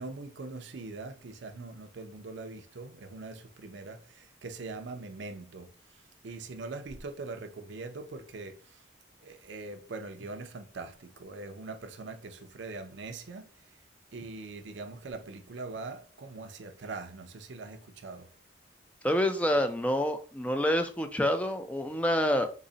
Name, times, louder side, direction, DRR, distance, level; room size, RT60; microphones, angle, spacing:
voice 1, 0.0-8.8 9.2-13.5 14.1-18.3, right 3 dB, 75° right, 0.5 m, -42 dB
voice 2, 19.0-22.5, equal, 5° left, 0.3 m, -27 dB
3.9 x 2.1 x 3.8 m
head